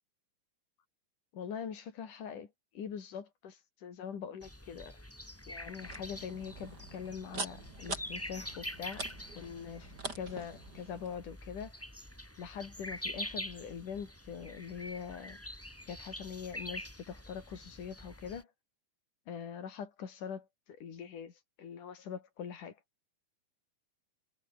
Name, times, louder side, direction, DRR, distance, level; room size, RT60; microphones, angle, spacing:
voice 1, 1.3-5.0 5.5-9.1 9.3-11.7 12.4-15.4 15.9-18.5 19.3-22.8, left 7 dB, 90° left, 4.6 m, -43 dB
sound 1, 4.4-18.4, left 1 dB, 5° left, 3.1 m, -46 dB
sound 2, 5.8-11.2, right 3 dB, 30° right, 5.2 m, -44 dB
omnidirectional pair, 3.5 m